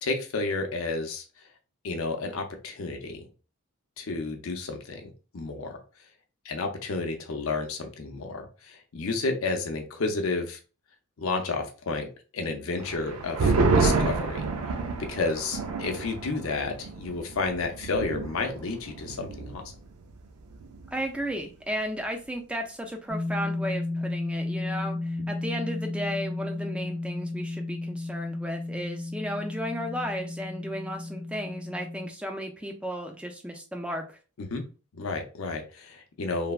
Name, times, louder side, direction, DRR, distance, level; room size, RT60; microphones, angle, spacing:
voice 1, 0.0-1.2 1.8-3.3 4.0-5.8 6.4-10.6 11.2-14.4 15.0-19.6 34.4-34.6 35.0-36.5, left 3 dB, 70° left, 4 dB, 0.6 m, -31 dB
sound 1, 12.8-19.7 20.0-20.1 20.5-21.0, right 3 dB, 85° right, 0.4 m, -28 dB
voice 2, 20.9-34.2, equal, 5° right, 3 dB, 0.3 m, -34 dB
sound 2, 23.1-32.1, left 2 dB, 60° right, 1.1 m, -33 dB
3.2 x 2.1 x 2.3 m, 0.35 s
head